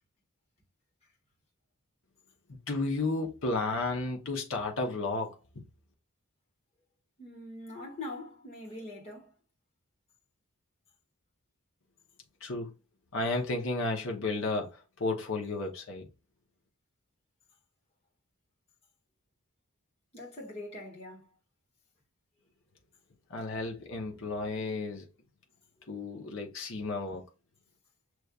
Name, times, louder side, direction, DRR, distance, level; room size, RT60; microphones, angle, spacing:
voice 1, 2.5-5.6 12.4-12.7 13.1-16.1 23.3-25.1 25.9-27.2, left 2 dB, 60° left, 0.9 m, -33 dB
voice 2, 7.2-9.3 20.1-21.3 25.8-26.0, left 2 dB, 25° left, 1.9 m, -43 dB
6.5 x 3.2 x 2.4 m
head